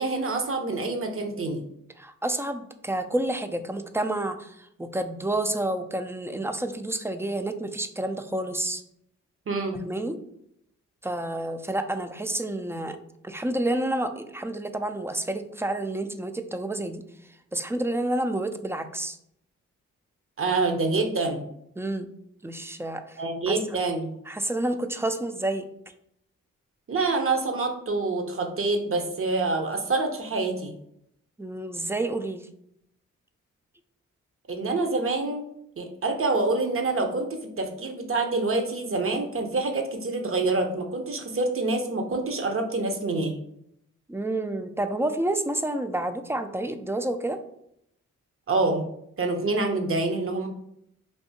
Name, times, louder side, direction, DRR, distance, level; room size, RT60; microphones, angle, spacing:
voice 1, 0.0-1.6 9.5-9.8 20.4-21.4 23.2-24.1 26.9-30.7 34.5-35.4 35.8-43.4 48.5-48.8 49.2-50.5, right 3 dB, 45° right, 4 dB, 0.7 m, -26 dB
voice 2, 2.0-8.8 9.7-10.2 11.0-13.0 13.2-17.0 17.5-19.2 21.8-22.1 22.4-23.2 23.5-23.6 24.3-25.7 31.4-32.5 44.1-47.4, right 1 dB, 10° right, 8 dB, 0.3 m, -29 dB
3.4 x 2.7 x 2.7 m, 0.74 s
supercardioid pair, 45°, 32 cm